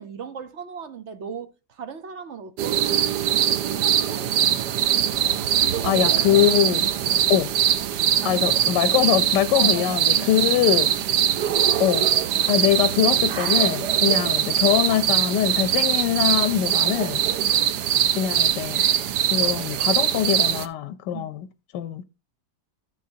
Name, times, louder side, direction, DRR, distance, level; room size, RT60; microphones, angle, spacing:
voice 1, 0.0-3.1 3.7-4.9 5.6-6.0 6.8-7.3 8.2-8.5 9.5-10.4 11.6-11.8 14.0-14.2 17.4-17.7 21.1-21.3, right 6 dB, 55° right, 0.9 m, -38 dB
sound 1, 2.6-20.7, right 10 dB, 75° right, 1.3 m, -22 dB
voice 2, 5.8-6.8 7.3-7.5 8.2-10.9 11.8-12.1 12.5-17.2 18.2-18.8 19.3-21.5 21.7-22.0, left 11 dB, 90° left, 1.3 m, -22 dB
13.5 x 6.5 x 2.6 m
omnidirectional pair, 1.8 m